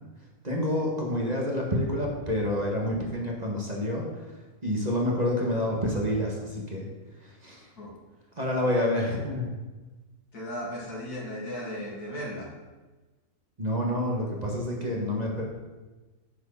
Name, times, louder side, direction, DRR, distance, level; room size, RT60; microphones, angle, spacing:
voice 1, 0.4-4.1 4.6-6.9 7.2-7.7 8.3-9.5 13.6-15.4, left 1 dB, 30° right, -2 dB, 1.4 m, -28 dB
voice 2, 10.3-12.5, equal, 80° left, -4 dB, 3.1 m, -36 dB
8.2 x 4.8 x 7.1 m, 1.2 s
omnidirectional pair, 1.6 m